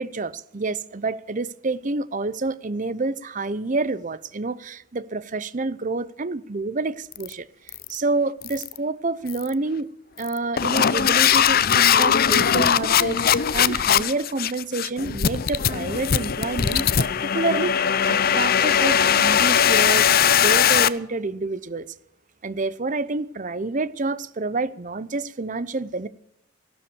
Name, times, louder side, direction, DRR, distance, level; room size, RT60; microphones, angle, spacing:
voice 1, 0.0-7.5 7.9-9.9 10.2-20.1 20.4-21.9 22.4-26.1, right 3 dB, 40° right, 0.7 m, -28 dB
sound 1, 7.1-7.3 7.7-8.0 8.4-8.8 9.3-9.5 10.2-20.9, left 8 dB, 45° left, 0.5 m, -20 dB
14.5 x 12.5 x 6.9 m
head